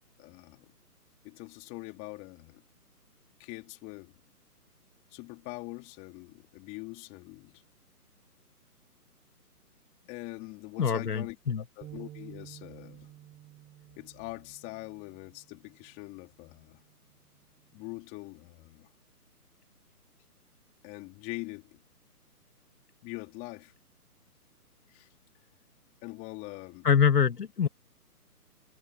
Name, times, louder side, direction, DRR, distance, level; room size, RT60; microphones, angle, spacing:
voice 1, 0.2-0.7 1.2-2.6 3.4-4.2 5.1-7.6 10.1-13.1 14.0-16.9 17.7-18.9 20.8-21.8 23.0-23.7 24.9-25.1 26.0-26.9, left 24 dB, 15° left, 3.6 m, -43 dB
voice 2, 10.8-11.6 26.8-27.7, left 7 dB, 85° left, 1.9 m, -24 dB
sound 1, 11.8-16.1 16.6-16.8 17.6-18.1, right 13 dB, 15° right, 5.2 m, -51 dB
hypercardioid pair, 160°, 47 cm